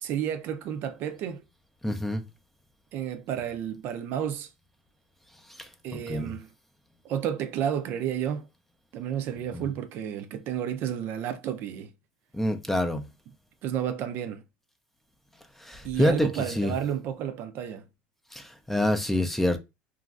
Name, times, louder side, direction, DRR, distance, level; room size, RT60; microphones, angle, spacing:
voice 1, 0.0-1.4 2.9-4.5 5.8-6.5 7.0-8.5 8.9-11.9 13.6-14.4 15.8-17.8, right 9 dB, 55° right, 0.4 m, -31 dB
voice 2, 1.8-2.2 5.5-6.4 9.5-9.6 12.3-13.0 15.6-16.7 18.3-19.6, left 1 dB, 5° left, 0.5 m, -27 dB
3.0 x 2.4 x 2.4 m
supercardioid pair, 110°, 4 cm